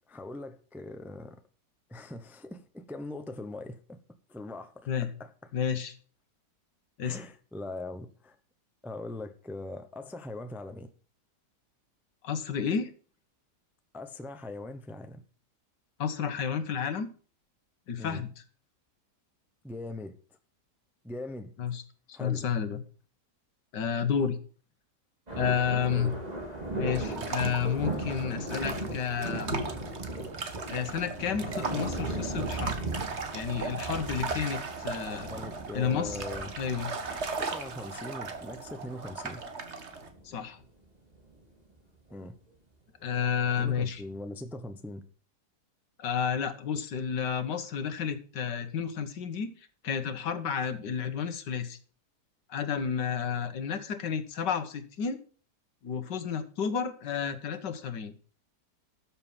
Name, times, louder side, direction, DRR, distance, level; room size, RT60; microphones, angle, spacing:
voice 1, 0.1-1.4 1.9-4.0 4.3-5.5 7.0-8.4 8.8-10.9 13.9-15.2 18.0-18.2 19.6-20.1 21.0-21.5 22.1-22.4 25.9-26.1 35.3-36.5 37.4-39.4 42.1-42.4 43.6-45.0, left 2 dB, ahead, 0.5 m, -41 dB
voice 2, 5.5-5.9 7.0-7.2 12.2-12.9 16.0-17.1 17.9-18.3 21.6-21.8 22.1-22.8 23.7-24.4 25.3-26.1 26.8-29.6 30.7-32.8 33.3-35.3 35.7-36.2 36.6-36.9 40.2-40.6 43.0-44.0 46.0-49.5 49.8-51.8 52.5-55.2 55.8-58.1, left 7 dB, 90° left, 1.9 m, -31 dB
sound 1, 25.3-39.4 39.9-40.2 41.1-41.4 42.1-42.2 43.7-43.8, right 2 dB, 25° right, 2.7 m, -37 dB
sound 2, 26.9-40.1, right 4 dB, 40° right, 1.5 m, -38 dB
13.0 x 7.2 x 5.6 m
omnidirectional pair, 1.8 m